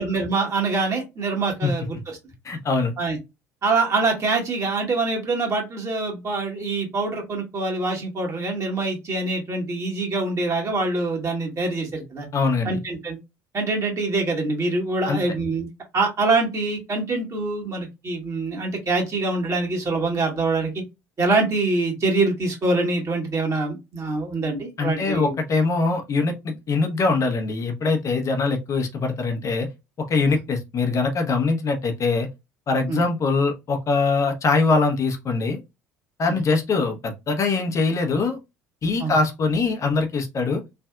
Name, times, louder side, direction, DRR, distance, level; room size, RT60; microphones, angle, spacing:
voice 1, 0.0-2.0 3.0-3.2 3.6-12.3 12.6-13.2 13.5-15.7 15.9-20.8 21.2-25.3 32.9-33.0 36.2-36.4 39.0-39.1, right 3 dB, 40° right, 1.6 m, -24 dB
voice 2, 2.4-2.9 12.3-12.8 15.1-15.2 24.8-29.7 30.0-32.3 32.7-35.6 36.2-38.4 38.8-40.6, left 4 dB, 40° left, 0.8 m, -22 dB
3.3 x 2.6 x 2.3 m
hypercardioid pair, 65°, 8 cm